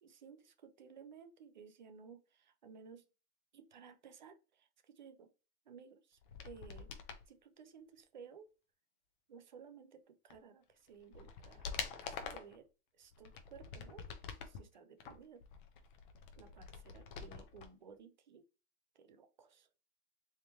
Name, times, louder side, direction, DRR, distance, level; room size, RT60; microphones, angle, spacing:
voice 1, 0.0-3.0 3.5-5.3 5.7-6.9 7.3-8.5 9.3-12.7 13.0-14.1 14.4-15.4 16.4-18.5 19.0-19.7, right 6 dB, 35° right, 0.4 m, -57 dB
sound 1, 6.2-7.2 10.3-10.4 10.9-12.6 13.1-14.6 15.0-17.7 17.9-18.0, left 6 dB, 35° left, 0.7 m, -46 dB
4.2 x 3.6 x 2.7 m
hypercardioid pair, 160°, 47 cm